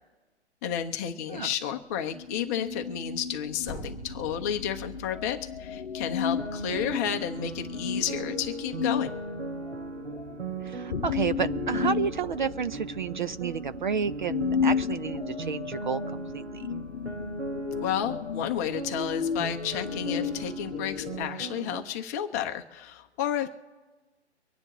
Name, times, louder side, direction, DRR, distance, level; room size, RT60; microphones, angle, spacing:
voice 1, 0.6-9.1 17.8-23.5, left 9 dB, 15° left, 5 dB, 0.7 m, -31 dB
sound 1, 2.1-21.3, left 6 dB, 65° left, 0.7 m, -34 dB
sound 2, 3.6-5.7, right 1 dB, 5° right, 1.1 m, -43 dB
sound 3, 6.2-21.8, right 3 dB, 75° right, 1.4 m, -38 dB
voice 2, 10.6-16.7, right 6 dB, 45° right, 12 dB, 0.5 m, -31 dB
24.5 x 9.7 x 3.1 m, 1.2 s
figure-of-eight pair, 140°, 34 cm